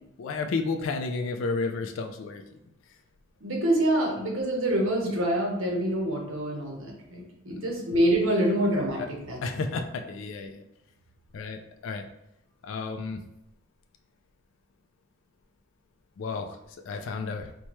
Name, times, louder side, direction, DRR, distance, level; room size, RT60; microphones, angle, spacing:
voice 1, 0.2-2.4 7.6-7.7 9.4-10.6 11.3-12.0 12.6-13.2 16.2-16.6 16.9-17.5, left 4 dB, 65° left, 5 dB, 0.3 m, -32 dB
voice 2, 3.4-9.4, right 1 dB, 80° right, 0 dB, 0.9 m, -26 dB
4.3 x 2.2 x 3.0 m, 0.84 s
head